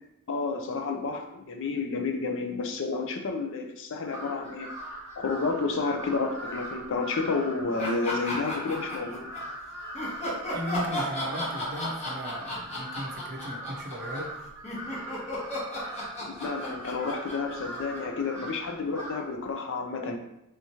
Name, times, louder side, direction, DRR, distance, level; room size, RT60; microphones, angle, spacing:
voice 1, 0.3-4.7 5.2-9.3 16.2-20.2, left 4 dB, 60° left, 4 dB, 0.5 m, -30 dB
Crow, 4.0-19.4, right 1 dB, 15° right, 1.1 m, -41 dB
sound 1, 7.8-9.4 9.9-18.2, left 1 dB, 30° left, 0.9 m, -34 dB
voice 2, 10.5-14.4, equal, 50° right, 1 dB, 0.6 m, -36 dB
3.5 x 2.9 x 2.8 m, 0.85 s
head